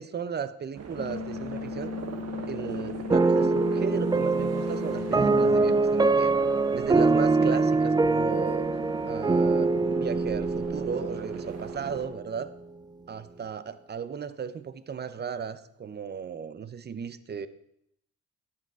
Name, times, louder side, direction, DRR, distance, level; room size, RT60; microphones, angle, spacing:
voice 1, 0.0-1.9 2.5-6.3 6.7-8.7 9.1-12.5 13.1-17.5, right 6 dB, 35° right, 14 dB, 0.8 m, -35 dB
sound 1, 0.7-12.1, right 6 dB, 55° right, 1.5 m, -40 dB
sound 2, 1.0-5.9, left 7 dB, 50° left, 1.5 m, -37 dB
sound 3, 3.1-12.3, right 3 dB, 15° right, 0.4 m, -24 dB
12.0 x 7.7 x 4.8 m, 0.76 s
cardioid pair, 90°, 30 cm